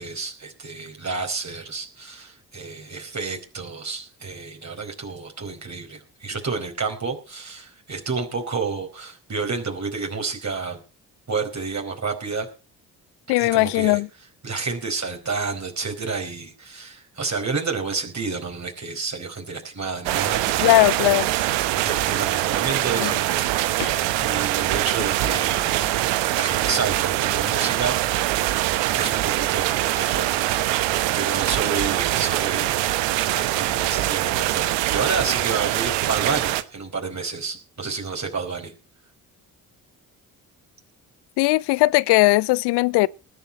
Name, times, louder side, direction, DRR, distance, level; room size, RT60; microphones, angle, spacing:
voice 1, 0.0-10.8 11.3-12.5 13.4-14.0 14.4-20.7 21.8-28.0 28.9-30.9 31.1-38.7, right 4 dB, 35° right, 4.6 m, -30 dB
voice 2, 13.3-14.1 20.6-21.3 23.0-23.1 23.8-23.9 41.4-43.1, left 20 dB, 60° left, 0.7 m, -19 dB
sound 1, 20.0-36.6, right 15 dB, 60° right, 1.1 m, -23 dB
20.0 x 9.7 x 4.2 m
figure-of-eight pair, 40°, 47 cm